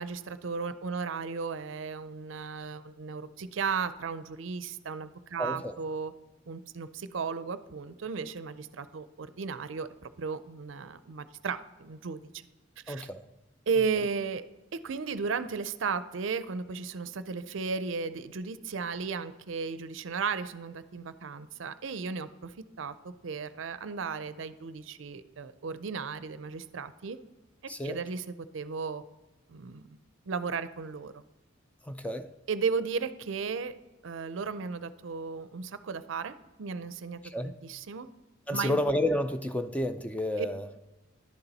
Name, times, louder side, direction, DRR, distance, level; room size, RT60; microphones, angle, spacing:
voice 1, 0.0-6.1 6.5-12.4 12.9-13.1 13.7-14.4 14.7-27.2 27.8-29.0 29.5-30.0 30.3-31.1 32.5-33.7 34.0-38.1 38.5-38.8 40.4-40.5, right 5 dB, 65° right, 13 dB, 0.5 m, -35 dB
voice 2, 5.4-5.8 12.9-13.2 27.7-28.0 31.9-32.3 37.2-37.5 38.5-40.7, left 1 dB, 5° left, 8 dB, 0.4 m, -30 dB
11.0 x 7.0 x 4.0 m, 1.1 s
head